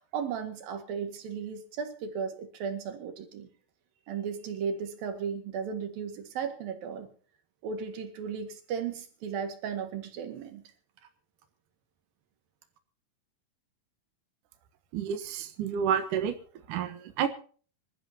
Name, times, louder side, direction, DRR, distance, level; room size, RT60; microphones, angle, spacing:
voice 1, 0.0-3.5 4.1-7.1 7.6-10.6, right 6 dB, 90° right, 7 dB, 3.8 m, -35 dB
voice 2, 14.9-16.3 16.7-17.3, right 8 dB, 70° right, 6 dB, 2.7 m, -29 dB
26.0 x 13.5 x 2.8 m, 0.42 s
omnidirectional pair, 4.0 m